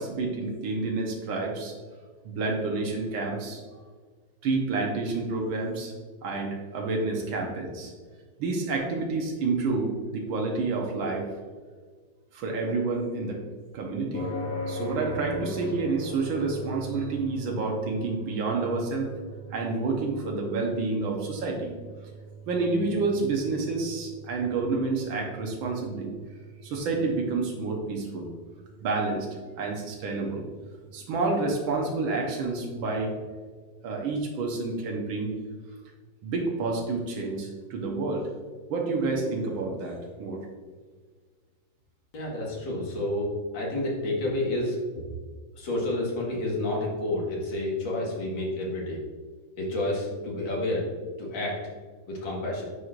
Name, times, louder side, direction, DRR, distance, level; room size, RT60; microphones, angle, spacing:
voice 1, 0.0-1.7 2.2-3.6 4.4-5.9 6.2-7.9 8.4-11.3 12.3-13.4 13.7-14.3 14.7-19.1 19.5-21.7 22.5-26.1 26.6-28.3 28.8-29.3 29.6-30.4 30.9-33.1 33.8-35.3 36.2-38.3 38.7-40.4, right 3 dB, 90° right, 0 dB, 1.7 m, -29 dB
sound 1, 14.1-30.6, equal, 35° left, 0.4 m, -41 dB
voice 2, 42.1-44.8 45.6-49.0 49.6-50.9 51.2-51.6 52.1-52.6, left 1 dB, 75° left, -3 dB, 2.3 m, -29 dB
9.0 x 4.6 x 2.5 m, 1.5 s
omnidirectional pair, 2.1 m